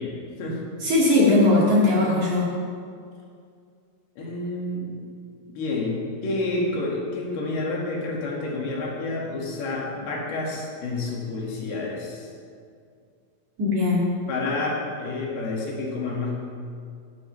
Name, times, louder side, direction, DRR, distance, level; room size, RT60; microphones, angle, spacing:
voice 1, 0.0-0.6 4.2-5.0 5.6-12.3 14.3-16.4, left 2 dB, 55° left, -3 dB, 3.7 m, -29 dB
voice 2, 0.8-2.5 13.6-14.0, left 2 dB, 45° right, -7 dB, 3.4 m, -19 dB
19.0 x 11.0 x 3.5 m, 2.3 s
omnidirectional pair, 6.0 m